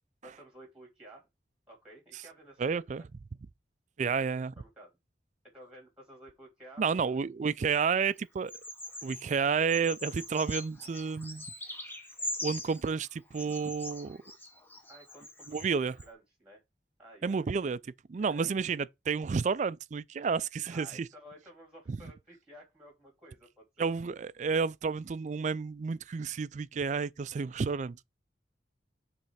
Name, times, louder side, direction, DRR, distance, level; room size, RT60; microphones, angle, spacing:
voice 1, 0.2-1.3 1.7-3.0 4.6-4.9 5.5-7.3 14.9-16.6 17.0-17.4 18.2-18.5 20.7-23.9, right 1 dB, 5° right, 3.0 m, -53 dB
voice 2, 2.6-3.0 4.0-4.5 6.8-8.5 9.0-11.5 12.4-14.2 15.5-15.9 17.2-17.8 18.1-21.1 21.9-22.0 23.8-28.0, right 5 dB, 45° right, 0.3 m, -31 dB
Bird vocalization bird call bird song, 8.5-9.3 9.7-12.8 13.3-15.7 16.0-16.1, left 2 dB, 10° left, 0.9 m, -42 dB
6.7 x 3.3 x 4.7 m
head